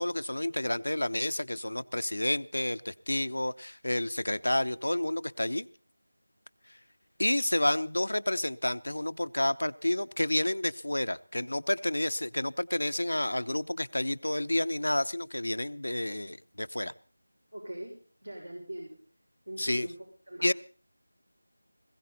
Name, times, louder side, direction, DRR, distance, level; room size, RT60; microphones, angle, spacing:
voice 1, 0.0-5.7 6.7-6.8 7.2-16.9 19.6-19.9 20.4-20.5, left 1 dB, 80° left, 12 dB, 0.8 m, -30 dB
voice 2, 17.5-19.0 19.5-19.9 20.3-20.5, right 1 dB, 90° right, 0 dB, 6.3 m, -41 dB
20.5 x 16.0 x 4.0 m, 0.41 s
figure-of-eight pair, 170°, 0 cm